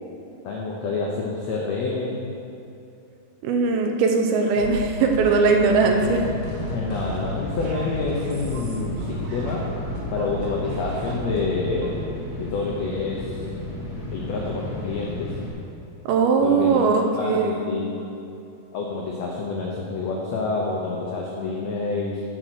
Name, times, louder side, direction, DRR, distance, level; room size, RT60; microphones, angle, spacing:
voice 1, 0.4-2.2 6.7-9.7 10.1-12.0 12.4-13.4 14.1-15.4 16.4-16.8 17.1-18.0 18.7-22.2, left 3 dB, 85° left, -2 dB, 1.5 m, -28 dB
voice 2, 3.4-6.2 16.1-17.7, right 4 dB, 80° right, 3 dB, 2.6 m, -20 dB
sound 1, 4.6-12.0, right 1 dB, 65° right, 2.7 m, -34 dB
sound 2, 5.7-15.5, left 2 dB, 5° right, 0.4 m, -33 dB
8.5 x 8.0 x 6.2 m, 2.6 s
omnidirectional pair, 4.5 m